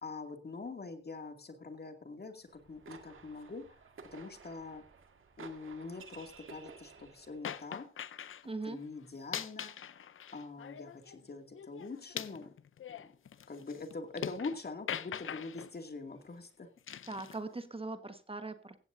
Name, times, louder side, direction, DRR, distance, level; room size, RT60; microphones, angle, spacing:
voice 1, 0.0-3.6 4.1-4.8 5.4-7.9 8.7-9.7 10.3-12.5 12.9-13.1 13.5-16.7, left 3 dB, 50° left, 5 dB, 2.4 m, -44 dB
sound 1, 2.4-7.5, right 5 dB, 85° right, 1.8 m, -54 dB
sound 2, 7.4-8.4 9.1-11.2 11.5-14.6 14.9-15.7 16.9-17.4, left 8 dB, 80° left, 0.6 m, -42 dB
voice 2, 8.4-8.8 17.1-18.8, right 3 dB, 25° right, 9 dB, 1.4 m, -40 dB
16.0 x 15.5 x 2.7 m, 0.38 s
wide cardioid pair, 85°, 21 cm